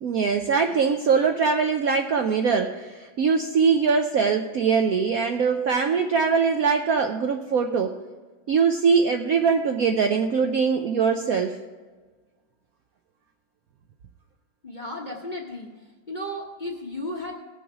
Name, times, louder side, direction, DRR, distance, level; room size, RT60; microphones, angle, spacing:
voice 1, 0.0-8.0 8.5-11.6, right 5 dB, 70° right, 5 dB, 0.8 m, -22 dB
voice 2, 14.6-15.7 16.1-17.3, left 1 dB, 35° left, 0 dB, 0.9 m, -34 dB
18.0 x 7.0 x 4.9 m, 1.4 s
omnidirectional pair, 2.0 m